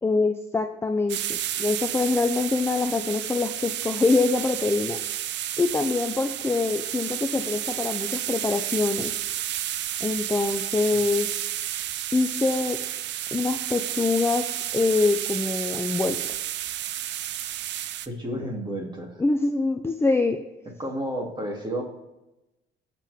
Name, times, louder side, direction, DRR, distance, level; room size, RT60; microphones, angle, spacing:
voice 1, 0.0-5.0 5.6-9.1 10.0-11.3 12.1-12.8 13.3-16.4 18.4-18.5 19.2-20.4, left 3 dB, 10° left, 6 dB, 0.5 m, -25 dB
sound 1, 1.1-18.1, right 12 dB, 60° right, 0.6 m, -31 dB
voice 2, 18.1-19.2 20.8-21.8, right 1 dB, 20° right, 0 dB, 2.8 m, -31 dB
20.0 x 7.5 x 3.6 m, 0.98 s
cardioid pair, 130°, 21 cm